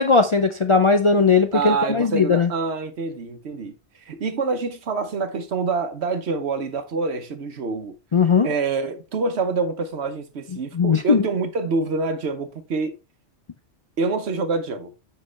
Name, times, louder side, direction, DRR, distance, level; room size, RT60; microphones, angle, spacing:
voice 1, 0.0-2.5 8.1-8.5 10.7-11.3, left 4 dB, 50° left, 0.3 m, -18 dB
voice 2, 1.5-3.7 4.0-7.9 8.4-12.9 14.0-14.9, right 4 dB, 65° right, 1.2 m, -26 dB
7.5 x 5.3 x 3.2 m
omnidirectional pair, 1.2 m